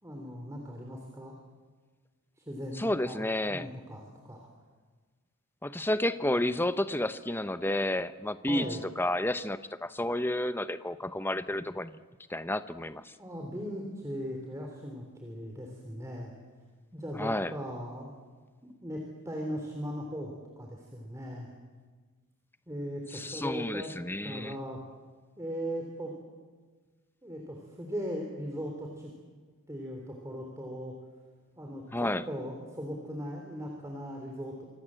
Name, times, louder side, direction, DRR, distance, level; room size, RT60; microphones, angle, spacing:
voice 1, 0.0-1.3 2.4-3.2 3.5-4.5 8.5-8.8 13.2-16.3 16.9-18.1 18.8-21.5 22.7-23.9 24.2-24.8 25.4-26.1 27.2-29.1 29.7-30.9 31.6-34.6, equal, 15° right, 1 dB, 3.6 m, -38 dB
voice 2, 2.8-3.7 5.6-8.7 9.0-12.0 12.3-13.1 17.2-17.5 23.1-24.5 31.9-32.2, left 1 dB, 10° left, 12 dB, 0.9 m, -31 dB
26.0 x 25.5 x 7.7 m, 1.4 s
head